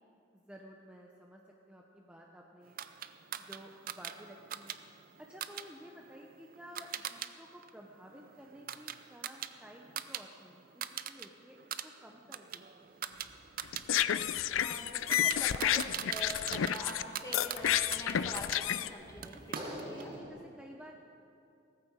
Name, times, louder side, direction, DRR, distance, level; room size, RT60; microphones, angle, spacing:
voice 1, 0.3-2.8 3.4-4.8 5.2-13.0 19.8-21.0, equal, 5° right, -1 dB, 0.8 m, -53 dB
sound 1, 2.8-7.3 7.6-10.2 10.5-11.3 11.6-18.6 19.2-20.1, right 9 dB, 45° right, 0.5 m, -42 dB
sound 2, 12.8-20.3, equal, 30° right, 3.0 m, -51 dB
sound 3, 13.6-17.0 17.3-18.9, left 10 dB, 85° left, 0.4 m, -30 dB
voice 2, 14.6-20.1, left 1 dB, 15° left, 0 dB, 1.8 m, -45 dB
17.0 x 14.5 x 4.7 m, 2.6 s
head